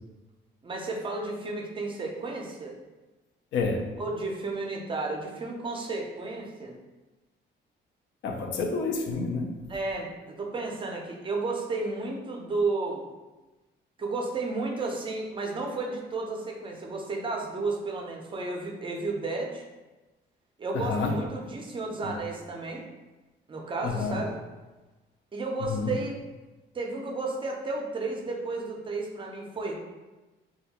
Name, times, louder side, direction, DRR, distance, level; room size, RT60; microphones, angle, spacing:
voice 1, 0.6-2.8 4.0-6.8 9.7-13.1 14.0-19.6 20.6-22.8 23.5-24.4 25.3-26.2 26.7-29.7, right 3 dB, 25° right, 0 dB, 0.5 m, -32 dB
voice 2, 3.5-3.9 8.2-9.6 20.7-21.2 22.0-22.2 23.8-24.2 25.6-26.0, left 4 dB, 70° left, 3 dB, 0.4 m, -29 dB
2.2 x 2.1 x 2.8 m, 1.1 s
cardioid pair, 90°, 20 cm